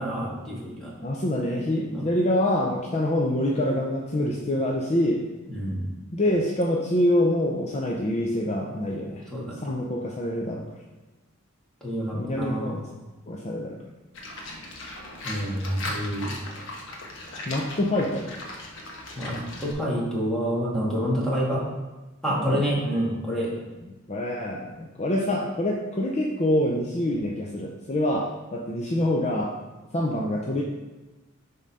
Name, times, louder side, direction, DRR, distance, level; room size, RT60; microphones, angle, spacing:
voice 1, 0.0-0.9 1.9-2.1 5.5-5.9 9.3-9.6 11.8-12.8 15.2-16.3 19.2-21.6 22.2-23.5, equal, 5° left, -6 dB, 2.0 m, -28 dB
voice 2, 1.0-5.2 6.1-9.2 9.6-10.7 12.1-12.8 13.3-13.8 17.5-18.3 22.3-22.7 24.1-29.5 29.9-30.6, left 1 dB, 35° left, -1 dB, 0.6 m, -26 dB
Livestock farm animals working animals, 14.1-19.7, left 1 dB, 65° left, 1.2 m, -38 dB
7.3 x 3.8 x 5.6 m, 1.1 s
head